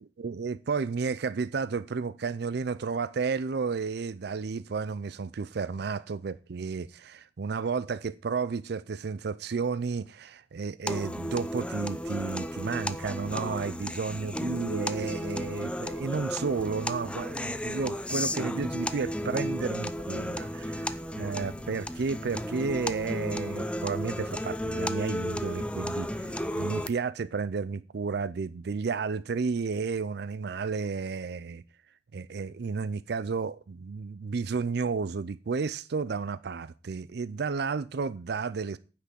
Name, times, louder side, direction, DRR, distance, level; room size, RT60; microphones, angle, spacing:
voice 1, 0.0-31.6 32.1-38.8, right 5 dB, 60° right, 0.4 m, -32 dB
sound 1, 10.9-26.9, left 1 dB, 5° left, 0.6 m, -34 dB
9.7 x 5.9 x 8.4 m
head